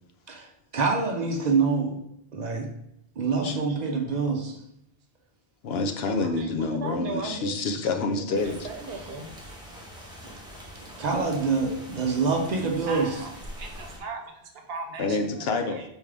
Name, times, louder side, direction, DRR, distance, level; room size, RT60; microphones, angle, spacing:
voice 1, 0.7-2.0 2.3-2.7 3.2-4.6 8.9-9.1 11.0-13.2, right 4 dB, 50° right, 3 dB, 0.6 m, -26 dB
voice 2, 5.6-8.7 15.0-15.8, left 3 dB, 75° left, 6 dB, 0.8 m, -28 dB
voice 3, 6.2-7.5 8.1-9.3 12.8-13.3 13.6-15.8, right 3 dB, 70° right, 4 dB, 0.9 m, -37 dB
sound 1, 8.3-14.0, equal, 5° right, 0.9 m, -43 dB
4.5 x 3.6 x 3.3 m, 0.76 s
omnidirectional pair, 1.1 m